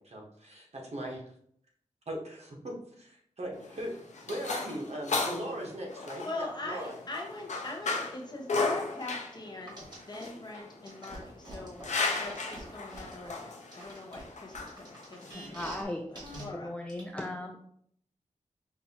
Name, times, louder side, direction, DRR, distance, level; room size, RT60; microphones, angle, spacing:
voice 1, 0.0-1.2 2.1-2.6 3.0-3.9 4.3-6.9, right 1 dB, 55° right, -2 dB, 1.1 m, -39 dB
sound 1, 3.5-15.8, left 3 dB, 65° left, 0.7 m, -36 dB
voice 2, 6.2-9.8 10.1-16.7, left 2 dB, 35° left, -1 dB, 0.9 m, -42 dB
sound 2, 9.7-10.3 10.8-13.3 13.7-15.8 16.1-16.4 16.9-17.0, right 1 dB, 35° right, 1.6 m, -45 dB
voice 3, 15.3-16.0 16.5-17.6, left 1 dB, 10° left, 2 dB, 0.4 m, -37 dB
5.6 x 2.6 x 2.8 m, 0.66 s
wide cardioid pair, 90°, 13 cm